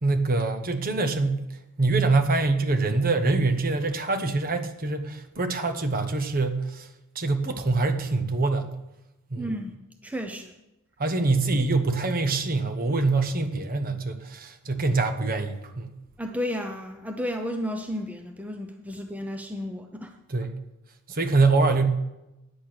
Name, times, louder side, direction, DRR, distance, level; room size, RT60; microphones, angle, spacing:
voice 1, 0.0-1.5 1.8-6.9 7.1-8.8 9.3-9.5 11.0-15.9 20.3-20.6 21.1-21.9, right 3 dB, 40° right, 7 dB, 1.0 m, -24 dB
voice 2, 9.4-10.5 16.2-20.1, equal, 5° right, 4 dB, 0.6 m, -33 dB
10.0 x 8.2 x 6.1 m, 0.94 s
head